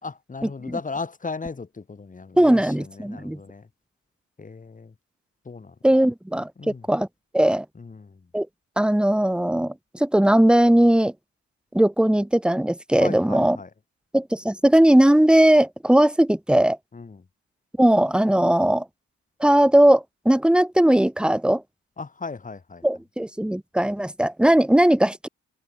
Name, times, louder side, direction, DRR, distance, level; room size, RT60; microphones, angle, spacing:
voice 1, 0.0-3.7 4.4-4.9 5.5-5.7 6.6-6.8 7.8-8.2 13.0-13.7 16.9-17.2 22.0-22.8, left 4 dB, 25° left, 2.4 m, -36 dB
voice 2, 2.4-3.4 5.8-6.5 6.9-7.1 7.3-7.6 8.3-8.5 8.8-11.1 11.7-13.6 14.1-16.8 17.8-18.8 19.4-21.6 22.8-25.3, right 1 dB, 5° right, 1.2 m, -18 dB
cardioid pair, 90°, 30 cm